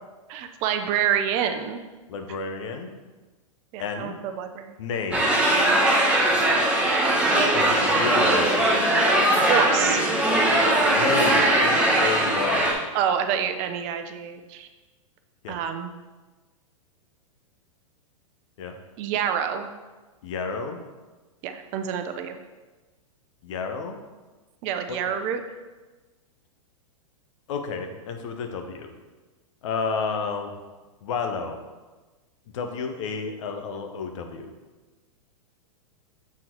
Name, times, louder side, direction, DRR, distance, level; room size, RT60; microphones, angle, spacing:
voice 1, 0.3-1.8 3.7-4.8 9.4-10.0 12.9-14.7 15.5-15.9 19.0-19.7 21.4-22.4 24.6-25.4, right 8 dB, 40° right, 7 dB, 0.6 m, -27 dB
voice 2, 2.1-2.9 3.8-4.2 4.8-5.3 7.5-8.8 10.9-12.8 15.4-15.6 18.6-18.7 20.2-20.8 23.4-24.0 24.9-25.1 27.5-28.9 29.6-30.6 31.0-31.6 32.5-34.5, left 5 dB, 60° left, 5 dB, 1.0 m, -31 dB
sound 1, 5.1-12.7, right 1 dB, 5° right, 1.3 m, -20 dB
7.2 x 3.8 x 4.5 m, 1.2 s
hypercardioid pair, 110°, 18 cm